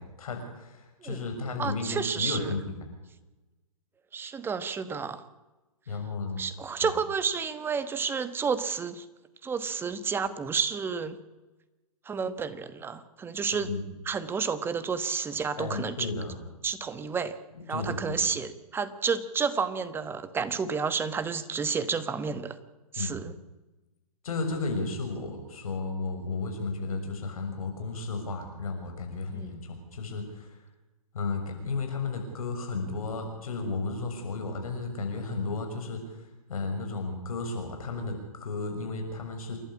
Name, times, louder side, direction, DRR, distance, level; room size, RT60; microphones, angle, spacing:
voice 1, 0.0-2.8 5.9-6.4 6.8-6.9 13.6-13.8 15.6-16.4 17.5-18.2 23.0-23.2 24.2-30.6 31.1-39.6, left 3 dB, 70° left, 4 dB, 6.8 m, -33 dB
voice 2, 1.6-2.5 4.1-5.2 6.4-9.0 9.4-11.2 12.0-13.7 14.0-16.1 16.6-17.4 17.7-22.6 22.9-23.3 29.3-29.6, right 5 dB, 10° right, 13 dB, 1.1 m, -30 dB
28.0 x 12.0 x 8.6 m, 1.1 s
hypercardioid pair, 130°, 19 cm